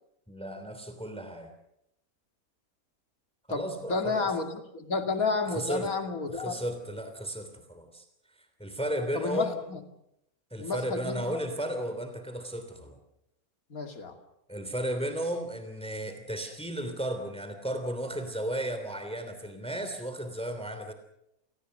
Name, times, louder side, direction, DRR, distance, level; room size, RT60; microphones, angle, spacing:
voice 1, 0.3-1.5 3.5-4.3 5.5-5.9 6.3-8.0 8.6-9.6 10.5-13.0 14.5-20.9, right 1 dB, 5° left, 7 dB, 3.0 m, -34 dB
voice 2, 3.9-6.6 9.1-9.8 10.6-11.4 13.7-14.1, left 4 dB, 75° left, 6 dB, 3.0 m, -31 dB
29.5 x 19.5 x 6.7 m, 0.80 s
omnidirectional pair, 1.5 m